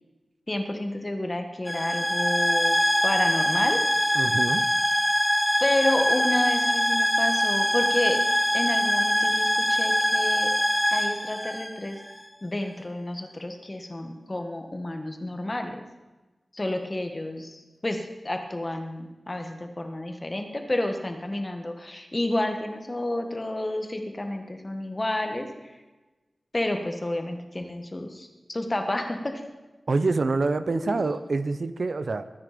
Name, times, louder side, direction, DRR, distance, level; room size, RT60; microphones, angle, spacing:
voice 1, 0.5-4.1 5.6-8.2 8.5-10.5 10.9-12.0 12.4-15.8 16.5-25.5 26.5-29.4 30.7-31.0, left 1 dB, 25° left, 5 dB, 1.6 m, -30 dB
sound 1, 1.7-12.2, equal, 5° left, 0.7 m, -23 dB
voice 2, 4.1-4.6 29.9-32.2, right 3 dB, 65° right, 12 dB, 0.7 m, -26 dB
23.0 x 9.7 x 5.1 m, 1.2 s
wide cardioid pair, 105°, 0 cm